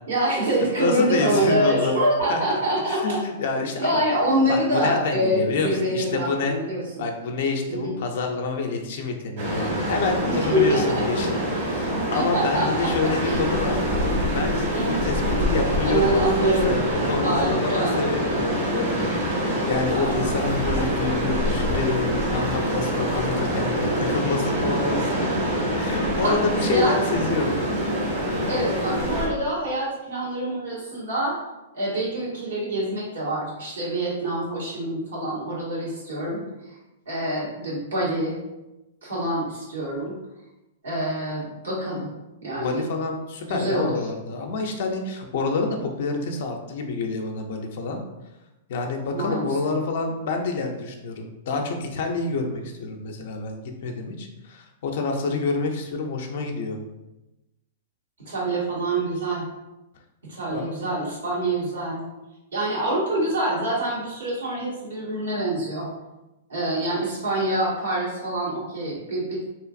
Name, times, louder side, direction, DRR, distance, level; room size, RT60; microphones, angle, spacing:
voice 1, 0.1-3.2 3.8-7.0 7.7-7.9 10.2-11.0 11.3-11.4 11.9-12.9 13.2-13.4 14.7-15.0 15.8-16.8 17.2-18.0 19.9-20.5 20.8-20.9 26.2-26.4 26.7-27.0 28.5-31.4 31.7-36.4 37.1-38.3 39.0-40.1 40.8-42.1 42.4-42.9 43.5-44.0 49.1-49.5 58.2-59.4 60.3-62.0 62.5-65.9 66.5-69.4, right 1 dB, 85° right, -6 dB, 1.3 m, -25 dB
voice 2, 0.8-2.0 2.3-2.6 2.9-4.0 4.5-6.6 7.0-11.4 11.7-13.8 14.3-19.0 19.7-25.3 25.8-27.6 42.6-48.0 48.7-56.8 60.5-60.7, left 3 dB, 65° left, 3 dB, 0.4 m, -28 dB
sound 1, 9.4-29.3, equal, 60° right, 1.3 m, -25 dB
2.8 x 2.5 x 2.4 m, 0.97 s
hypercardioid pair, 115°, 0 cm